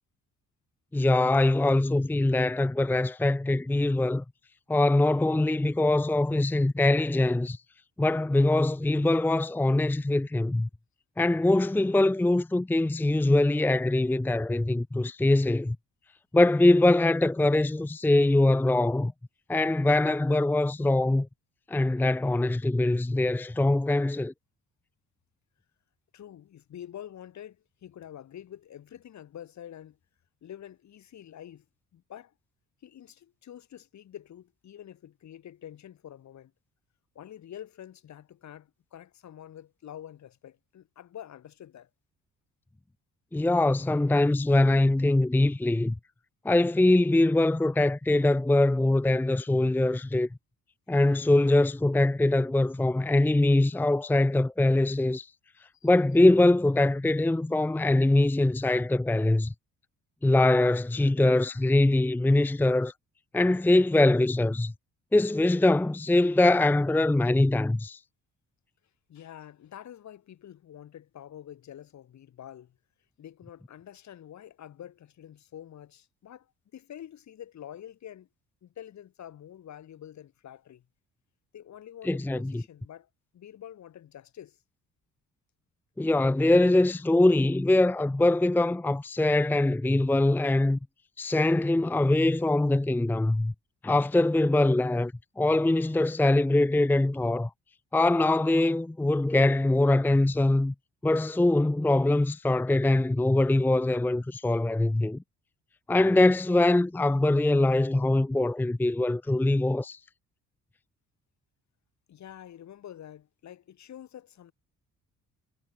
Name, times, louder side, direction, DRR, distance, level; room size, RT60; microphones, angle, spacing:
voice 1, 0.9-4.2 4.7-7.6 8.0-10.7 11.2-15.8 16.3-19.1 19.5-21.3 21.7-24.3 43.3-45.9 46.4-50.3 50.9-55.3 55.8-59.5 60.2-62.9 63.3-64.7 65.1-68.0 82.0-82.6 86.0-90.8 91.2-93.5 93.8-97.5 97.9-100.7 101.0-105.2 105.9-110.0, left 2 dB, 5° left, 0.6 m, -23 dB
voice 2, 26.1-30.0 30.4-31.7 31.9-32.3 32.8-36.5 37.1-41.9 55.6-55.9 69.1-72.8 73.2-78.3 78.6-80.8 81.5-84.6 112.1-114.5, left 10 dB, 65° left, 4.3 m, -47 dB
cardioid pair, 90°, 30 cm